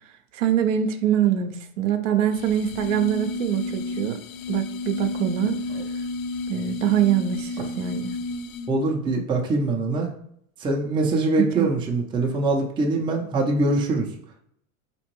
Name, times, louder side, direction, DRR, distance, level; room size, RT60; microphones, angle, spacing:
voice 1, 0.3-4.2 4.5-5.6 6.5-8.2 11.4-11.7, right 10 dB, 65° right, 8 dB, 0.6 m, -24 dB
sound 1, 2.3-8.8, left 3 dB, 75° left, 0.5 m, -32 dB
voice 2, 8.7-10.1 10.6-14.1, right 2 dB, 10° right, 0 dB, 0.5 m, -23 dB
4.2 x 3.0 x 3.0 m, 0.69 s
hypercardioid pair, 110°, 41 cm